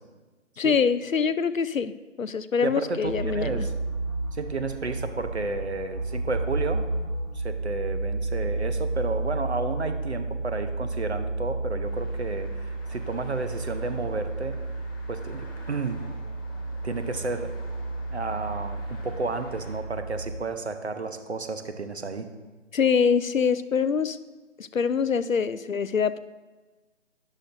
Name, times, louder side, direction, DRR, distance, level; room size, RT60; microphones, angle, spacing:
voice 1, 0.6-3.7 22.7-24.2 24.6-26.2, left 6 dB, 85° left, 15 dB, 0.6 m, -24 dB
voice 2, 2.6-3.7 4.3-6.9 7.3-14.6 15.1-16.0 16.8-17.5 18.1-22.3, right 3 dB, 55° right, 9 dB, 0.9 m, -32 dB
sound 1, 3.0-20.3, right 2 dB, 90° right, 1.6 m, -32 dB
sound 2, 11.8-19.8, left 1 dB, 15° left, 1.4 m, -49 dB
12.5 x 10.5 x 2.6 m, 1.2 s
figure-of-eight pair, 155°, 39 cm